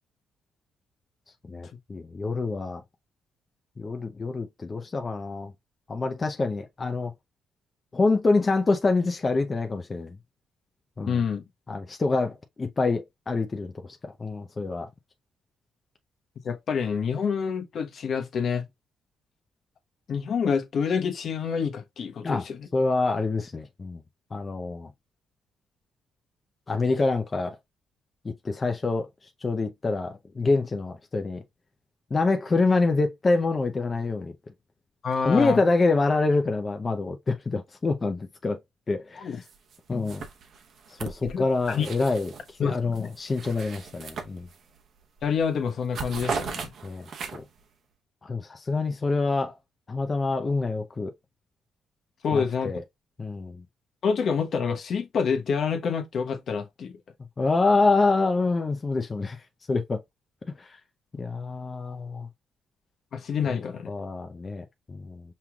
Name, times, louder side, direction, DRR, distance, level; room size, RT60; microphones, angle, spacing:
voice 1, 1.5-2.8 3.8-5.5 5.9-7.1 7.9-10.2 11.0-11.2 11.7-13.7 14.0-14.9 22.2-22.4 22.7-24.0 24.3-24.9 26.7-27.6 28.4-29.1 29.4-31.4 32.1-34.3 35.2-38.6 38.9-39.3 39.9-40.3 41.0-42.3 42.6-44.5 46.8-47.4 48.2-49.5 49.9-51.1 52.3-52.8 53.2-53.6 57.4-59.4 59.7-60.0 60.6-60.8 61.2-62.3 63.5-63.6 63.9-65.2, left 3 dB, 30° left, 0.6 m, -26 dB
voice 2, 11.1-11.4 16.4-18.6 20.1-22.7 35.0-35.6 39.2-39.4 41.2-41.9 42.6-43.1 45.2-46.7 52.2-52.7 54.0-56.9 63.1-63.9, left 6 dB, 60° left, 1.0 m, -27 dB
sound 1, 39.4-39.8 40.1-42.5 42.9-44.8 45.2-45.4 45.7-47.6, right 5 dB, 65° right, 0.9 m, -37 dB
5.5 x 3.0 x 2.3 m
cardioid pair, 90°, 0 cm